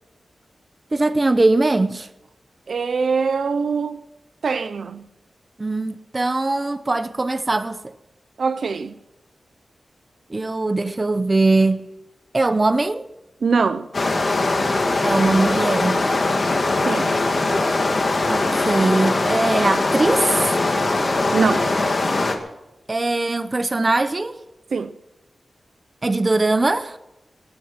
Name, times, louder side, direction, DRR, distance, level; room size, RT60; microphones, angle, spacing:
voice 1, 0.9-2.1 5.6-7.8 10.3-11.8 12.3-13.1 15.0-16.3 18.3-20.6 22.9-24.4 26.0-27.0, right 2 dB, 25° right, 0.8 m, -21 dB
voice 2, 2.7-4.0 4.4-5.0 8.4-8.9 13.4-13.9 16.8-17.1 21.3-21.7 24.7-24.9, right 5 dB, 60° right, 0.7 m, -22 dB
sound 1, 13.9-22.3, left 2 dB, 40° left, 2.0 m, -21 dB
22.5 x 9.4 x 5.9 m
wide cardioid pair, 165°, 0 cm